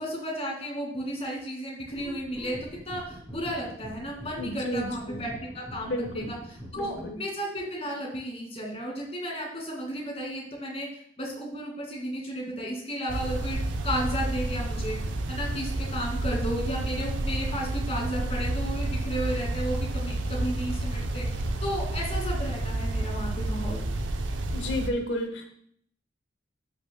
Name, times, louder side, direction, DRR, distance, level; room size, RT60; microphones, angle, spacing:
voice 1, 0.0-2.6 2.9-6.4 6.7-10.9 11.2-15.0 15.3-21.3 21.6-23.8, equal, 30° left, -1 dB, 2.1 m, -33 dB
sound 1, 1.9-7.1, equal, 5° right, 2.4 m, -43 dB
voice 2, 4.4-5.3 5.8-6.3 6.7-7.2 24.5-25.5, left 1 dB, 80° left, 4 dB, 1.1 m, -32 dB
sound 2, 13.1-24.9, right 2 dB, 85° right, 0.7 m, -30 dB
13.5 x 5.9 x 2.2 m, 0.65 s
head